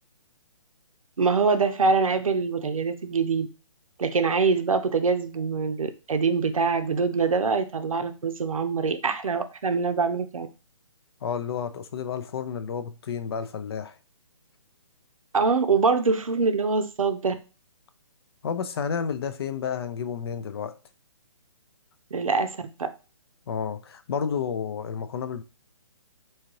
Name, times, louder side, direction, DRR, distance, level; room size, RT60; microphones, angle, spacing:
voice 1, 1.2-3.5 4.0-10.5 15.3-17.3 22.1-22.9, right 4 dB, 85° right, 0.5 m, -24 dB
voice 2, 11.2-14.0 18.4-20.8 23.5-25.4, left 7 dB, 50° left, 0.4 m, -31 dB
2.8 x 2.4 x 3.0 m
figure-of-eight pair, 140°, 17 cm